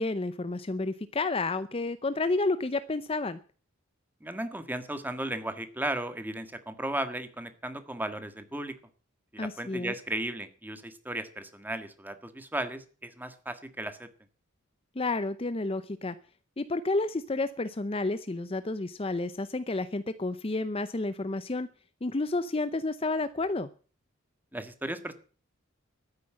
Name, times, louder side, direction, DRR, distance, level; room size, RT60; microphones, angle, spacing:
voice 1, 0.0-3.4 9.4-9.9 15.0-16.2 16.6-21.7 22.0-23.7, left 2 dB, 30° left, 13 dB, 0.6 m, -30 dB
voice 2, 4.2-8.7 9.3-14.1 24.5-25.1, right 1 dB, 10° right, 9 dB, 1.6 m, -35 dB
13.0 x 9.6 x 7.6 m, 0.40 s
head